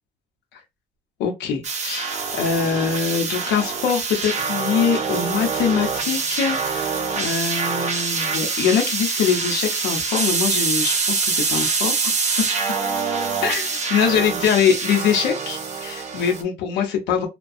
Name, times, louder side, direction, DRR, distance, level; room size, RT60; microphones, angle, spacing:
voice 1, 1.2-12.1 13.4-17.3, left 7 dB, 80° left, 0.7 m, -23 dB
sound 1, 1.6-16.4, right 5 dB, 40° right, 0.7 m, -25 dB
2.4 x 2.2 x 2.6 m
cardioid pair, 110°, 17 cm